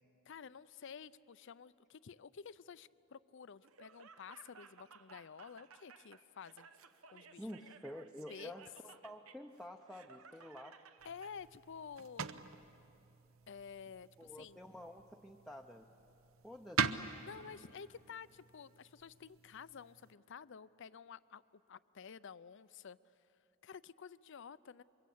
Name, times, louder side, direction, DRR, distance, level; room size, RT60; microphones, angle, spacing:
voice 1, 0.3-6.7 7.1-7.5 8.3-8.5 11.0-12.3 13.5-14.6 17.2-21.4 21.7-23.0 23.6-24.8, left 6 dB, 60° left, 17 dB, 0.5 m, -51 dB
Laughter, 3.6-11.3, right 6 dB, 90° right, 1.1 m, -59 dB
voice 2, 7.4-10.8 14.2-15.9 16.4-16.9, left 1 dB, ahead, 2 dB, 0.6 m, -50 dB
sound 1, 11.0-20.1, right 5 dB, 70° right, 0.8 m, -44 dB
27.5 x 24.0 x 8.5 m, 3.0 s
head